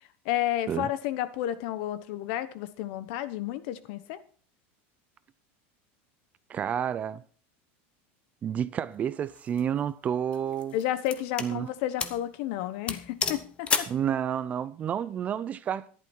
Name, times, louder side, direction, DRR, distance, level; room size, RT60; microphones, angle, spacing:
voice 1, 0.2-4.2 10.7-13.9, left 13 dB, 55° left, 1.1 m, -31 dB
voice 2, 6.5-7.2 8.4-10.7 11.4-11.7 13.9-15.9, right 9 dB, 20° right, 0.5 m, -30 dB
sound 1, 9.3-9.6 10.3-11.5 12.0-12.2 12.5-12.6 12.9-14.0, left 5 dB, 15° left, 0.9 m, -31 dB
13.5 x 11.0 x 4.5 m
supercardioid pair, 165°, 7 cm